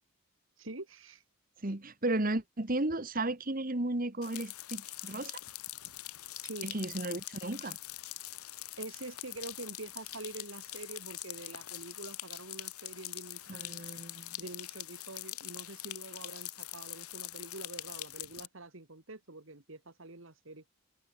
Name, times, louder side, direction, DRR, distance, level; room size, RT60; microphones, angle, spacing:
voice 1, 0.6-1.2 6.4-6.7 8.8-13.8 14.4-20.6, right 2 dB, 60° right, 2.1 m, -46 dB
voice 2, 1.6-5.4 6.6-7.8 13.5-14.4, right 2 dB, 40° right, 1.5 m, -34 dB
sound 1, 4.2-18.5, left 16 dB, 85° left, 1.4 m, -43 dB
head